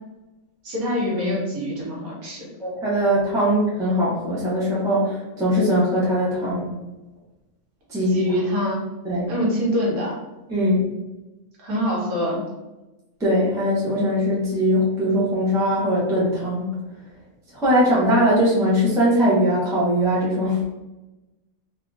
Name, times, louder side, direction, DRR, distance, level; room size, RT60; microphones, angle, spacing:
voice 1, 0.6-2.5 8.1-8.8 9.2-10.1 11.6-12.4, equal, 75° right, -4 dB, 1.4 m, -25 dB
voice 2, 2.6-6.7 7.9-8.3 9.0-9.3 10.5-10.9 13.2-16.7 17.5-20.6, equal, 5° right, -7 dB, 0.5 m, -21 dB
3.5 x 2.3 x 2.5 m, 1.1 s
omnidirectional pair, 1.6 m